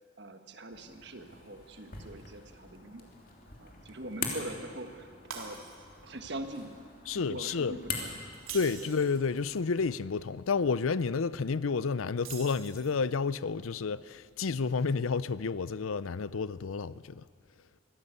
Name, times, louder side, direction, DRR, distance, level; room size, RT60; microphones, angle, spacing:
voice 1, 0.2-3.1 3.6-5.6 6.0-6.7 7.1-8.1 8.8-8.9, right 1 dB, 55° right, 1.5 m, -43 dB
sound 1, 0.7-9.9, left 4 dB, 45° left, 3.1 m, -44 dB
Shatter, 5.3-6.1 6.5-6.7 8.3-9.2 12.2-13.1, right 6 dB, 85° right, 3.5 m, -44 dB
voice 2, 7.1-7.8 8.5-17.2, left 5 dB, 85° left, 0.6 m, -30 dB
23.5 x 16.0 x 8.2 m
head